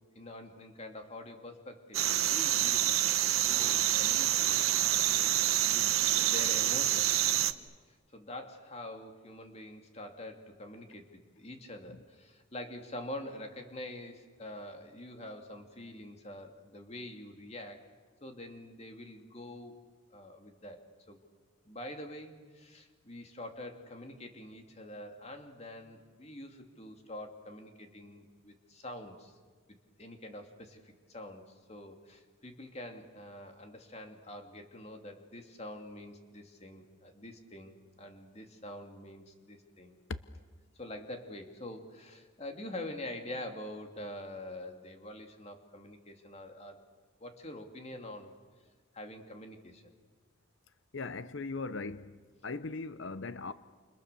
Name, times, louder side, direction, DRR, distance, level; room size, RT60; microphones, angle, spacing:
voice 1, 0.1-3.1 3.4-5.4 5.7-7.3 7.8-17.8 18.2-19.8 20.1-21.2 21.7-29.4 30.0-40.0 40.7-46.8 47.2-48.3 48.9-49.8, left 1 dB, 30° left, 2.6 m, -45 dB
sound 1, 1.9-7.5, right 12 dB, 85° right, 1.0 m, -27 dB
voice 2, 50.9-52.2 52.4-53.5, left 3 dB, 65° left, 0.7 m, -39 dB
29.0 x 29.0 x 6.9 m
head